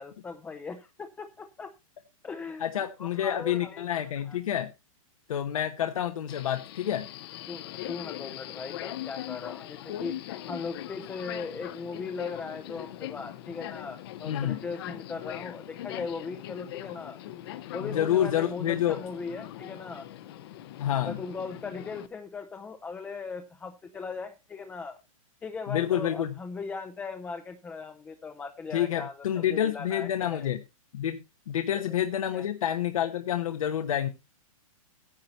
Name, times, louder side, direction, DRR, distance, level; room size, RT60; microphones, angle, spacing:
voice 1, 0.0-1.7 2.2-2.7 3.0-4.4 7.5-10.2 10.5-17.2 17.7-20.1 21.0-25.0 25.4-30.5 31.9-32.0 32.3-32.4, left 4 dB, 10° left, 6 dB, 0.5 m, -39 dB
voice 2, 2.6-4.7 5.3-7.1 14.3-14.6 17.7-19.0 20.8-21.2 25.7-26.3 28.7-30.6 30.9-31.2 31.5-34.1, left 10 dB, 75° left, 7 dB, 1.1 m, -28 dB
Subway metro underground, 6.3-22.1, left 13 dB, 45° left, 0.7 m, -41 dB
9.8 x 9.3 x 4.2 m, 0.26 s
hypercardioid pair, 155°, 18 cm